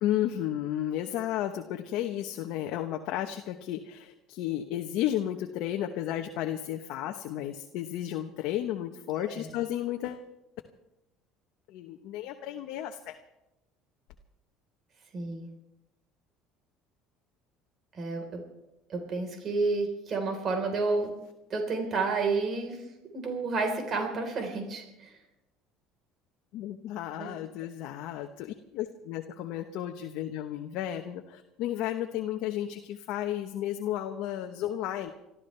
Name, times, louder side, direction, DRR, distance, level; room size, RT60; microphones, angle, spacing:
voice 1, 0.0-10.3 11.7-13.2 26.5-35.1, left 12 dB, 70° left, 4 dB, 1.0 m, -33 dB
voice 2, 9.2-9.5 15.1-15.5 17.9-18.4 18.9-21.1 21.5-22.8 23.1-25.1 27.2-27.3, right 3 dB, 40° right, 3 dB, 4.1 m, -30 dB
29.5 x 13.5 x 3.4 m, 0.91 s
supercardioid pair, 110°, 0 cm